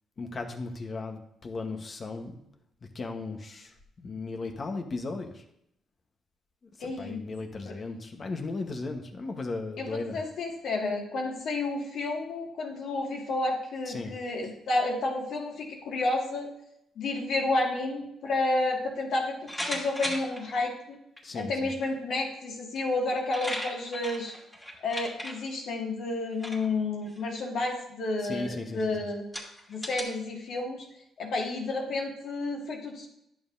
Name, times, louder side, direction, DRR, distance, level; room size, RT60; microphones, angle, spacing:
voice 1, 0.2-2.4 2.9-5.4 6.8-10.2 13.8-14.1 21.2-21.7 28.2-29.0, left 3 dB, 40° left, 5 dB, 1.2 m, -36 dB
voice 2, 6.8-7.2 7.6-7.7 9.8-16.5 17.0-21.0 21.3-24.3 24.8-29.2 29.7-30.9 31.2-33.1, left 2 dB, 70° left, -1 dB, 2.0 m, -31 dB
sound 1, 19.5-20.4 21.2-21.3 22.7-22.8 23.1-25.3 26.3-26.7 27.1-27.4 28.1-28.2 28.8-28.9 29.3-30.0, equal, 10° left, 2.4 m, -36 dB
11.0 x 7.3 x 2.7 m, 0.77 s
cardioid pair, 90°, 0 cm